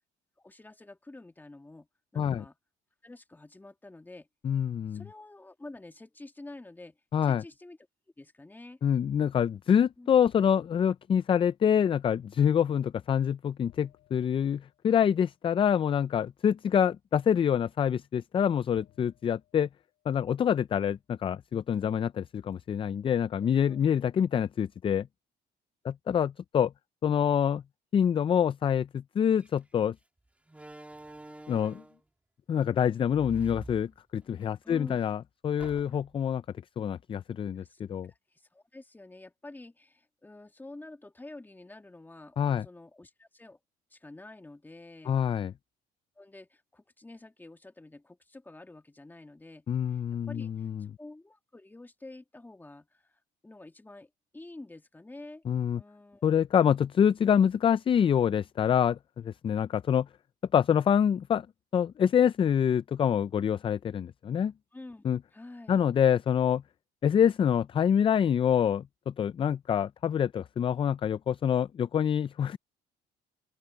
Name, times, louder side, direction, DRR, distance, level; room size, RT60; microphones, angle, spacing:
voice 1, 0.4-1.9 2.1-2.6 3.0-4.3 4.9-7.0 7.2-7.8 8.2-8.8 10.0-10.1 23.6-23.8 34.6-35.1 37.6-37.8 38.1-43.6 43.9-45.2 46.2-50.0 50.3-50.7 51.0-55.4 55.7-56.2 64.7-65.0 65.3-65.8, left 2 dB, 10° left, 2.0 m, -48 dB
voice 2, 4.4-5.0 7.1-7.4 8.8-19.7 20.1-25.1 25.8-26.7 27.0-27.6 27.9-29.9 31.5-31.8 32.5-36.4 36.8-38.1 42.4-42.7 45.1-45.5 49.7-50.9 55.5-55.8 56.2-60.1 60.5-61.5 61.7-64.5 65.0-65.2 65.7-66.6 67.0-72.6, left 8 dB, 30° left, 0.4 m, -26 dB
sound 1, 10.2-11.2 13.7-15.3 16.5-16.6 18.7-20.5, left 16 dB, 85° left, 6.7 m, -61 dB
Slam, 29.4-29.6 30.5-32.0 33.1-34.5 34.8-34.9 35.6-36.2, right 1 dB, 10° right, 2.5 m, -46 dB
open air
cardioid pair, 110°, 17 cm